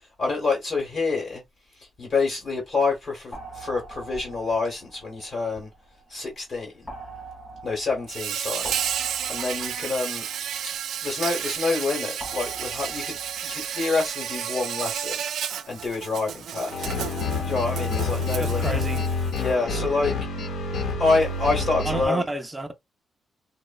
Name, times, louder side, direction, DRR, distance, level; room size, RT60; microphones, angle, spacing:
voice 1, 0.2-1.4 2.0-5.7 6.1-6.8 7.6-8.8 9.3-10.3 11.0-15.2 15.7-16.9 17.5-18.8 19.4-20.1 21.0-22.3, left 3 dB, 40° left, 0.9 m, -27 dB
sound 1, 3.3-6.1 6.9-11.4 12.2-14.0, right 3 dB, 10° left, 0.8 m, -43 dB
Insect, 8.1-19.5, right 9 dB, 90° right, 0.3 m, -32 dB
sound 2, 16.7-22.1, left 3 dB, 80° left, 0.8 m, -28 dB
voice 2, 18.4-19.0 21.9-22.7, right 2 dB, 10° right, 0.4 m, -29 dB
3.0 x 2.0 x 2.2 m
wide cardioid pair, 160°, 0 cm